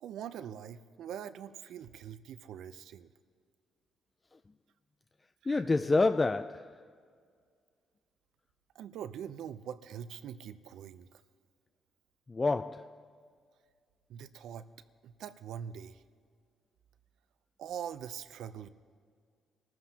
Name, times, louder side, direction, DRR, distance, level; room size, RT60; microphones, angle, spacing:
voice 1, 0.0-3.1 5.4-5.6 8.7-11.2 14.1-14.7 15.0-16.0 17.6-18.7, right 9 dB, 75° right, 0.6 m, -43 dB
voice 2, 5.5-6.8 12.3-13.0, left 3 dB, 25° left, 0.3 m, -28 dB
24.0 x 13.5 x 2.9 m
cardioid pair, 90°, 0 cm